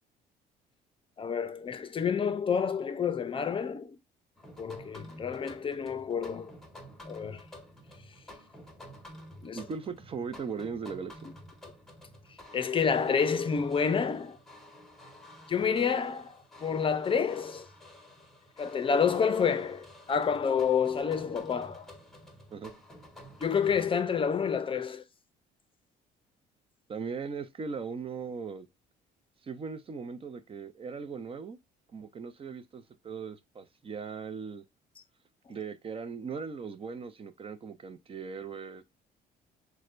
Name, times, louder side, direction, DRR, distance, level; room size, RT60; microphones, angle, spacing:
voice 1, 1.2-4.0 4.6-6.5 7.0-7.4 9.4-9.6 12.5-14.4 15.5-17.7 18.6-21.9 23.4-25.0, left 6 dB, 30° left, 0.6 m, -29 dB
sound 1, 4.4-23.9, left 1 dB, ahead, 1.1 m, -51 dB
voice 2, 9.5-11.3 22.5-22.7 26.9-28.7 29.4-31.6 31.9-34.6 35.5-38.8, right 5 dB, 35° right, 0.6 m, -39 dB
6.2 x 2.2 x 2.5 m
cardioid pair, 110°, 17 cm